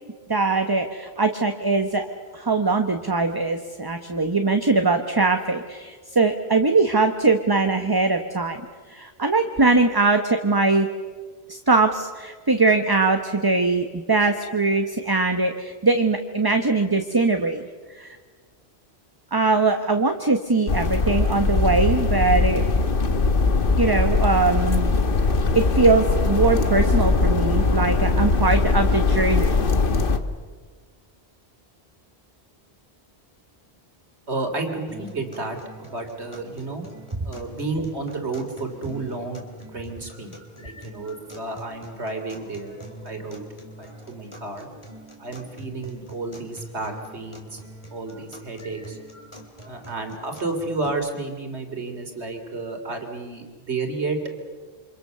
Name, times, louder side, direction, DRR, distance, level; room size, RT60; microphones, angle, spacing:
voice 1, 0.3-2.1 2.3-8.6 8.9-10.9 11.5-17.6 18.0-18.2 19.3-22.6 23.8-25.0 25.5-29.7 37.2-37.3, right 3 dB, 20° right, 6 dB, 1.1 m, -21 dB
sound 1, 20.7-30.2, left 3 dB, 55° left, 1.5 m, -21 dB
voice 2, 34.3-36.8 37.2-39.4 39.7-42.8 43.0-43.5 43.8-44.7 45.2-47.6 47.9-49.0 49.6-54.2, right 3 dB, 85° right, 4 dB, 3.5 m, -31 dB
sound 2, 34.9-50.9, right 1 dB, 25° left, 3.5 m, -44 dB
28.0 x 25.5 x 6.8 m, 1.5 s
omnidirectional pair, 1.1 m